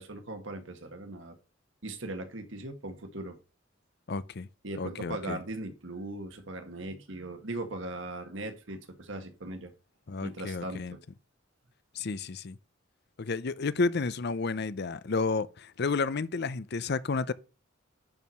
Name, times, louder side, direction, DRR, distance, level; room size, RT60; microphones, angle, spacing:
voice 1, 0.0-1.4 1.8-3.4 4.6-9.7 10.2-11.0, right 2 dB, 70° right, 1.8 m, -39 dB
voice 2, 4.1-4.5 4.8-5.4 10.1-11.0 11.9-12.6 13.2-17.3, left 4 dB, 55° left, 0.6 m, -31 dB
10.5 x 4.8 x 5.6 m
head